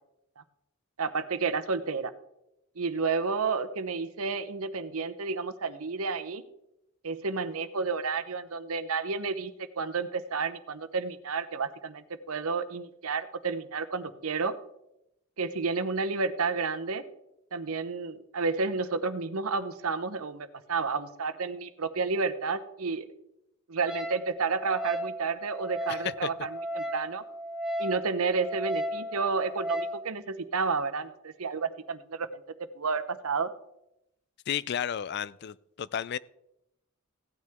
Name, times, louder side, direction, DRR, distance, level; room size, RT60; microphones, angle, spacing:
voice 1, 1.0-2.1 2.8-6.4 7.0-9.5 9.8-14.6 15.4-17.0 17.5-23.1 23.7-26.5 26.7-27.2 27.8-32.4 32.8-33.5, right 4 dB, 85° right, 10 dB, 0.9 m, -31 dB
Wind instrument woodwind instrument, 23.9-30.0, equal, 5° right, 0.8 m, -35 dB
voice 2, 25.9-26.3 34.5-36.2, left 9 dB, 50° left, 20 dB, 0.3 m, -32 dB
16.5 x 9.5 x 3.6 m, 0.84 s
head